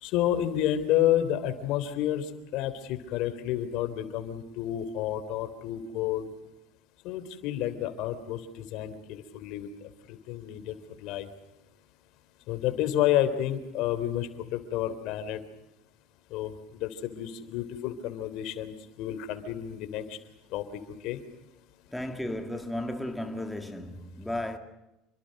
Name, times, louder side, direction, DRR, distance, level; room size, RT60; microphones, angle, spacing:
voice 1, 0.0-6.3 7.0-10.7 11.0-11.3 12.5-15.4 16.3-20.2 20.5-20.6 21.0-21.2, left 11 dB, 65° left, 3.6 m, -30 dB
voice 2, 21.9-24.6, left 1 dB, 5° left, 2.3 m, -34 dB
29.0 x 24.0 x 6.7 m
supercardioid pair, 120°, 0 cm